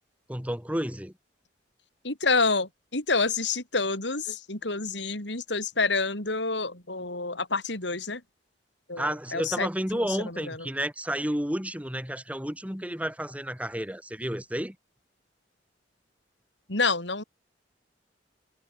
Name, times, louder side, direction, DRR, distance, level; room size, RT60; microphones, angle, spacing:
voice 1, 0.3-1.1 9.0-14.8, equal, 10° right, 5.2 m, -31 dB
voice 2, 2.0-8.2 8.9-10.7 16.7-17.2, left 3 dB, 70° left, 5.4 m, -28 dB
head